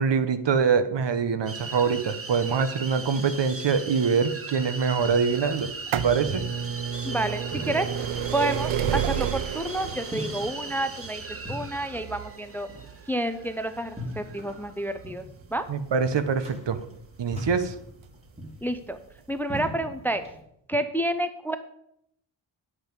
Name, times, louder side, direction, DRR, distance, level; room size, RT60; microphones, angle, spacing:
voice 1, 0.0-6.4 15.7-16.8 17.2-17.7, right 6 dB, 60° right, 11 dB, 0.9 m, -24 dB
sound 1, 1.5-15.1, right 3 dB, 30° right, 1.1 m, -39 dB
sound 2, 4.6-20.4, equal, 15° right, 3.0 m, -41 dB
sound 3, 5.6-17.2 18.1-18.2 19.1-19.2 19.4-19.5, right 9 dB, 80° right, 0.7 m, -32 dB
voice 2, 7.0-12.7 13.1-15.2 15.5-15.6 18.6-19.0 19.3-20.3 20.7-21.6, right 1 dB, 5° left, 10 dB, 0.5 m, -29 dB
10.0 x 8.2 x 5.2 m, 0.74 s
wide cardioid pair, 150°, 48 cm